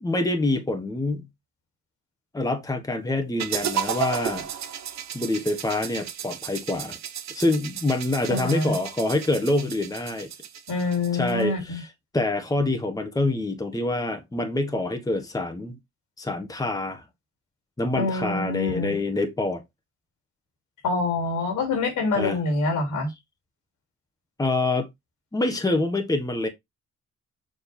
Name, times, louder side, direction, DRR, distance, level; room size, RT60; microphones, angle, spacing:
voice 1, 0.0-1.3 2.3-4.5 5.1-7.0 7.3-10.3 11.1-11.9 12.1-15.8 16.2-17.0 17.8-19.6 22.1-22.4 24.4-24.9 25.3-26.5, left 2 dB, 10° left, 1.2 m, -26 dB
sound 1, 3.4-11.4, right 8 dB, 65° right, 1.0 m, -34 dB
voice 2, 8.3-8.7 10.7-11.8 17.9-19.0 20.8-23.1, left 3 dB, 85° left, 3.4 m, -26 dB
7.1 x 3.2 x 4.3 m
cardioid pair, 90°, 30 cm